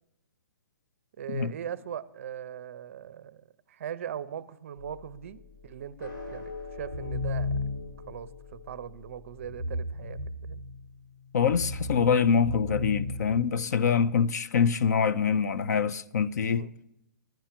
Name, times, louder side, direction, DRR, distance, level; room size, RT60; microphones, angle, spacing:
voice 1, 1.2-3.4 3.7-7.5 8.1-10.6 16.5-16.7, right 9 dB, 40° right, 0.5 m, -40 dB
sound 1, 4.8-9.9, left 3 dB, 90° left, 3.9 m, -45 dB
sound 2, 6.8-8.1 9.4-10.9 11.4-13.9, left 2 dB, 30° left, 1.1 m, -34 dB
voice 2, 11.3-16.7, left 6 dB, 55° left, 0.4 m, -25 dB
10.5 x 10.0 x 5.8 m
hypercardioid pair, 170°, 11 cm